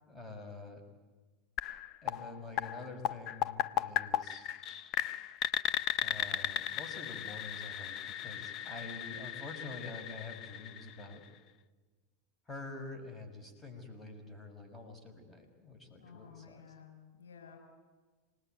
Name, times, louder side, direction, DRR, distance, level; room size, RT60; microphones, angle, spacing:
voice 1, 0.1-0.8 2.0-4.5 6.0-11.2 12.5-16.6, left 3 dB, 15° left, 5 dB, 6.2 m, -47 dB
sound 1, 1.6-11.4, left 11 dB, 45° left, 0.9 m, -36 dB
voice 2, 16.0-17.6, left 7 dB, 80° left, 2 dB, 7.0 m, -54 dB
27.5 x 19.5 x 9.3 m, 1.3 s
hypercardioid pair, 95°, 0 cm